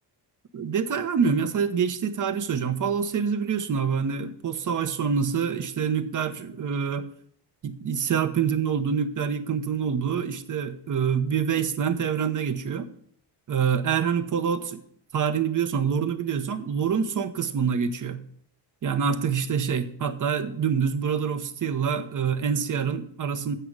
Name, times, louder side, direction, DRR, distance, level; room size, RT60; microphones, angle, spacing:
voice 1, 0.5-7.1 7.6-12.9 13.5-14.8 15.1-18.2 18.8-23.5, right 7 dB, 45° right, 9 dB, 1.0 m, -26 dB
8.0 x 6.1 x 8.1 m, 0.63 s
cardioid pair, 130°, 43 cm